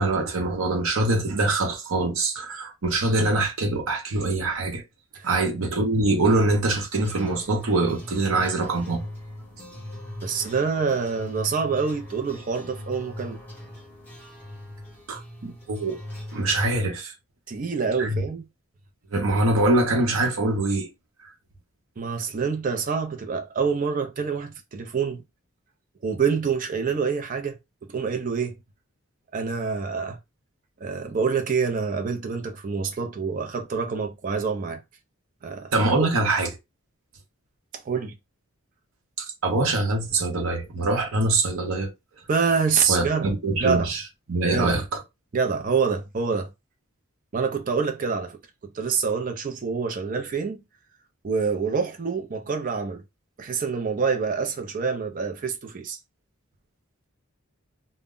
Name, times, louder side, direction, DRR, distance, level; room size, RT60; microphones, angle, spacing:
voice 1, 0.0-4.8 5.2-9.1 15.1-16.0 16.3-17.1 18.0-18.2 19.1-20.9 35.7-36.5 39.2-41.9 42.9-44.0 44.3-44.8, right 2 dB, 75° right, 0.7 m, -24 dB
sound 1, 7.0-16.8, left 1 dB, 10° left, 0.9 m, -40 dB
voice 2, 10.2-13.4 17.5-18.4 22.0-25.2 26.0-27.6 27.9-28.6 29.3-30.2 30.8-34.8 35.4-35.7 37.8-38.2 42.3-43.3 43.6-43.9 44.5-44.8 45.3-46.5 47.3-48.4 48.7-50.6 51.2-53.0 53.4-56.0, right 5 dB, 40° right, 0.4 m, -26 dB
2.1 x 2.0 x 3.5 m
head